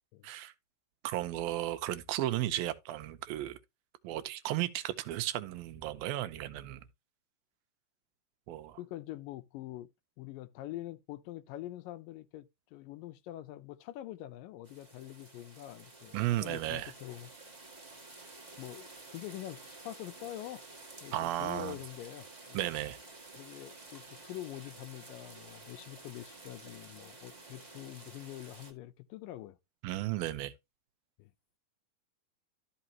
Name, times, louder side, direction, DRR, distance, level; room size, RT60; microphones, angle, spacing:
voice 1, 1.0-3.6 4.0-6.8 8.5-8.8 16.1-16.9 21.1-21.8 22.5-23.0 29.8-30.5, right 14 dB, 85° right, 2.6 m, -34 dB
voice 2, 8.8-9.9 10.2-17.3 18.6-20.6 21.0-22.7 23.3-29.6 31.2-31.3, left 14 dB, 80° left, 2.3 m, -45 dB
sound 1, 14.6-28.7, right 3 dB, 25° right, 0.8 m, -52 dB
12.5 x 5.7 x 2.8 m
omnidirectional pair, 4.1 m